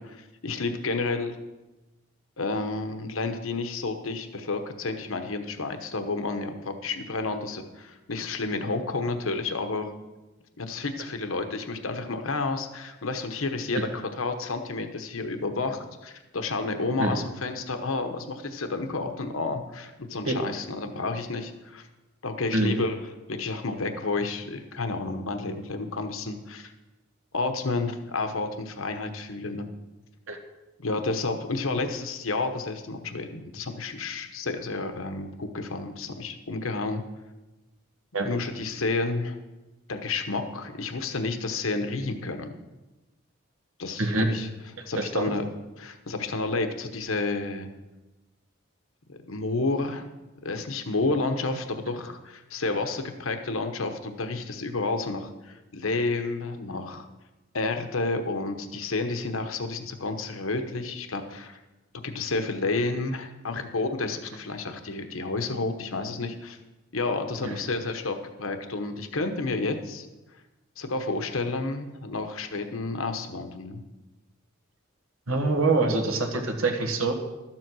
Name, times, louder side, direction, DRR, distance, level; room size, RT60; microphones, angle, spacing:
voice 1, 0.0-1.4 2.4-9.9 10.6-21.9 22.2-23.0 23.3-26.7 27.3-29.7 30.8-37.0 38.2-39.4 39.9-42.5 43.8-44.5 44.9-45.5 45.8-47.7 49.1-50.0 50.4-57.1 57.5-61.6 62.0-66.6 66.9-70.1 70.8-73.8, left 3 dB, 80° left, 7 dB, 1.1 m, -30 dB
voice 2, 44.0-44.3 44.8-45.3 67.4-67.6 75.3-77.1, right 3 dB, 90° right, 4 dB, 1.6 m, -25 dB
12.5 x 7.6 x 6.2 m, 1.1 s
head